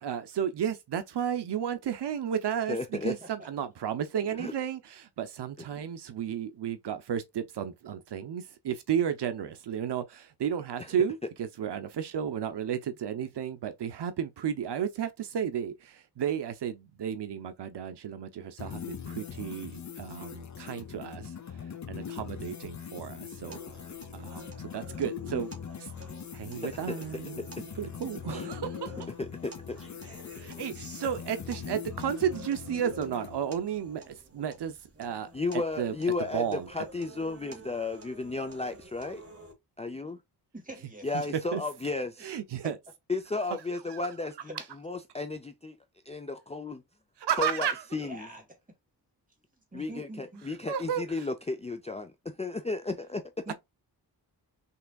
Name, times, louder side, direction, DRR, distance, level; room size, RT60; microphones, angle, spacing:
voice 1, 0.0-21.3 21.9-23.6 24.1-25.5 25.8-25.9 26.3-28.9 30.3-35.3 35.8-35.9 36.3-36.7 41.1-41.2 41.5-41.6 42.2-42.7 43.9-44.0 47.2-47.8 50.7-51.0, right 8 dB, 80° right, 0.7 m, -33 dB
voice 2, 2.7-3.1 4.4-4.5 10.8-10.9 26.6-26.9 27.4-27.5 28.3-28.5 29.2-29.8 35.3-39.2 39.8-40.2 41.0-42.4 43.1-44.3 44.8-45.8 46.1-46.8 47.4-48.3 49.7-53.2, left 3 dB, 15° left, 0.4 m, -34 dB
sound 1, 18.6-33.4, left 8 dB, 45° left, 0.7 m, -41 dB
sound 2, 23.5-39.5, right 2 dB, 35° right, 1.8 m, -50 dB
voice 3, 40.5-41.3 42.6-42.7 44.4-44.5 47.9-48.4 49.7-50.5 53.5-53.6, right 1 dB, 20° right, 2.2 m, -44 dB
5.6 x 3.4 x 2.3 m
wide cardioid pair, 140°, 40 cm